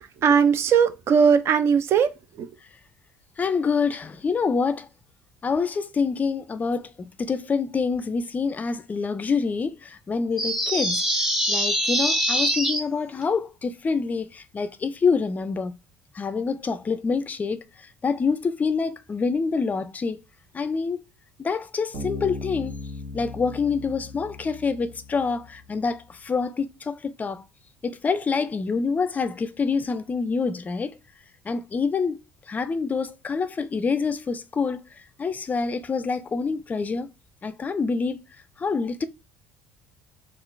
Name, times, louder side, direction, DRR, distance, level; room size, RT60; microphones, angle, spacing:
voice 1, 0.0-2.1 2.4-2.5, right 7 dB, 50° right, 0.6 m, -19 dB
voice 2, 3.4-4.9 5.4-11.0 11.5-15.8 16.1-17.6 18.0-20.2 20.5-21.0 21.4-22.8 23.1-27.4 27.8-30.9 31.4-32.2 32.5-34.8 35.2-37.1 37.4-38.2 38.6-39.1, left 5 dB, 30° left, 0.4 m, -26 dB
sound 1, 10.4-12.8, equal, 5° right, 1.0 m, -23 dB
Bass guitar, 21.9-25.4, left 2 dB, 70° right, 1.8 m, -37 dB
3.8 x 2.4 x 3.1 m
hypercardioid pair, 70°, 5 cm